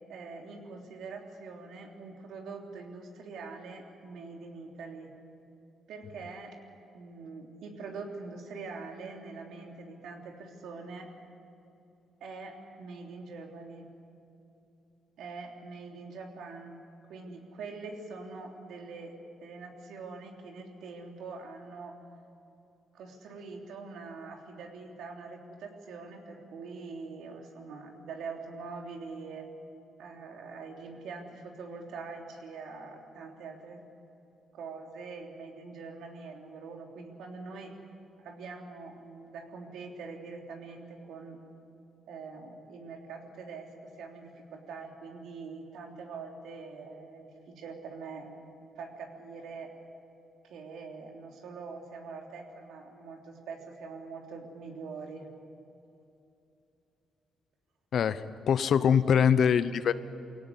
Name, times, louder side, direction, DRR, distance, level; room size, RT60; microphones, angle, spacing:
voice 1, 0.1-5.1 5.9-6.5 6.9-11.1 12.2-13.9 15.2-16.8 17.1-22.0 22.9-29.5 30.0-33.8 34.5-37.7 38.2-41.4 42.1-48.3 48.7-49.7 50.4-55.3, right 4 dB, 80° right, 2 dB, 3.3 m, -44 dB
voice 2, 57.9-59.9, left 7 dB, 60° left, 14 dB, 0.9 m, -24 dB
23.5 x 17.5 x 9.9 m, 2.8 s
cardioid pair, 90°, 0 cm